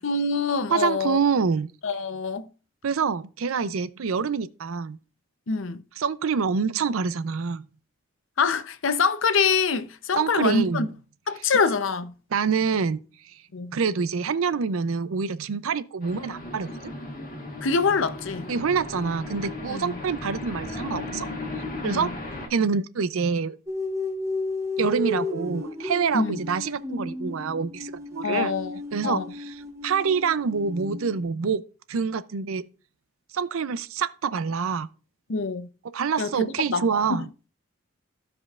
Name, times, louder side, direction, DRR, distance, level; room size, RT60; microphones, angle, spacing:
voice 1, 0.0-1.2 1.8-2.5 5.5-5.8 8.4-10.9 11.3-12.1 13.5-13.7 17.6-18.5 19.7-20.0 21.8-22.1 26.1-26.4 28.2-29.3 35.3-35.7 36.2-37.2, left 4 dB, 65° left, 0.6 m, -25 dB
voice 2, 0.7-1.7 2.8-5.0 6.0-7.6 10.2-10.9 12.3-13.4 13.7-16.9 18.5-21.3 21.8-22.1 22.5-23.6 24.8-28.5 28.9-31.6 31.9-32.6 33.3-34.9 35.9-37.3, right 5 dB, 80° right, 0.5 m, -26 dB
sound 1, 16.0-22.5, left 2 dB, 40° left, 1.4 m, -36 dB
sound 2, 23.7-31.3, left 2 dB, 15° right, 0.6 m, -33 dB
15.0 x 5.1 x 2.4 m
head